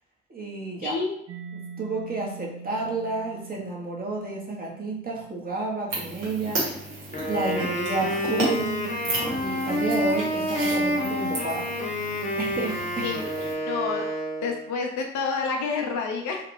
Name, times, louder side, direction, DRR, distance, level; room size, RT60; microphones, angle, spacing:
voice 1, 0.3-0.9 1.5-8.8 9.3-11.7 12.4-13.1, right 3 dB, 25° right, -2 dB, 0.9 m, -31 dB
voice 2, 0.8-1.1 13.0-13.2 13.7-14.0 14.4-16.4, left 5 dB, 55° left, 2 dB, 0.5 m, -28 dB
Mallet percussion, 1.3-8.8, right 5 dB, 40° right, 0.4 m, -45 dB
sound 1, 5.9-13.5, right 1 dB, 65° right, 1.1 m, -34 dB
Wind instrument woodwind instrument, 7.1-14.7, equal, 20° left, 0.9 m, -28 dB
2.4 x 2.1 x 3.0 m, 0.72 s
figure-of-eight pair, 45°, 36 cm